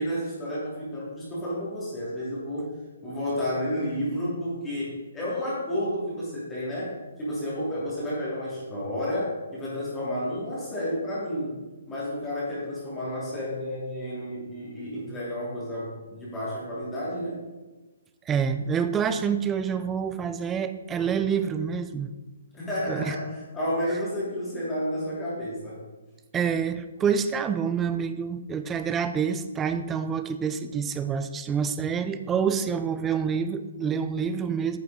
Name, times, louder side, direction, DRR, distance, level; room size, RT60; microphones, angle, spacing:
voice 1, 0.0-2.8 3.0-11.6 11.9-17.4 22.5-25.8, equal, 15° left, -8 dB, 3.0 m, -31 dB
voice 2, 18.3-22.1 22.9-23.2 26.3-34.8, right 7 dB, 15° right, 10 dB, 0.5 m, -27 dB
9.4 x 6.8 x 3.7 m, 1.2 s
hypercardioid pair, 150°, 0 cm